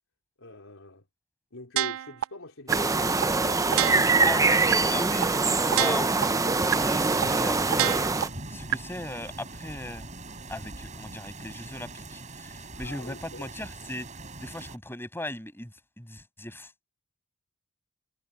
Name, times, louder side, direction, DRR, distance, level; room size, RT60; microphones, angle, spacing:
voice 1, 0.4-1.0 1.5-3.2 3.4-4.1 12.7-13.5, left 2 dB, 65° left, 4.2 m, -43 dB
sound 1, 1.8-2.2 2.7-2.8 3.2-3.3 3.7-4.2 4.7-4.8 5.2-5.3 5.7-6.2 6.7-6.8 7.2-7.3 7.7-8.2 8.7-8.8, right 12 dB, 65° right, 0.4 m, -26 dB
sound 2, 2.7-8.3, right 3 dB, 15° right, 0.6 m, -24 dB
voice 2, 4.3-6.2 6.7-8.1 8.5-10.1 10.5-14.1 14.4-16.7, left 1 dB, 10° left, 7.9 m, -37 dB
sound 3, 6.8-14.8, right 2 dB, 35° right, 4.5 m, -42 dB
head